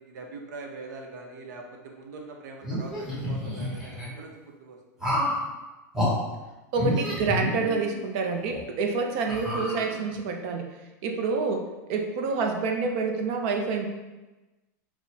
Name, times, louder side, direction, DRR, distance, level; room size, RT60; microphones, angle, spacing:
voice 1, 0.0-4.3 4.6-5.1, right 3 dB, 85° right, 2 dB, 0.6 m, -43 dB
sound 1, 2.6-4.1 5.0-5.4 5.9-6.1 6.7-8.0 8.5-8.6 9.3-10.2, left 1 dB, 5° right, 0.7 m, -29 dB
voice 2, 6.7-10.7 11.0-13.9, right 4 dB, 40° right, 3 dB, 0.4 m, -28 dB
4.4 x 2.0 x 2.7 m, 1.1 s
supercardioid pair, 165°, 9 cm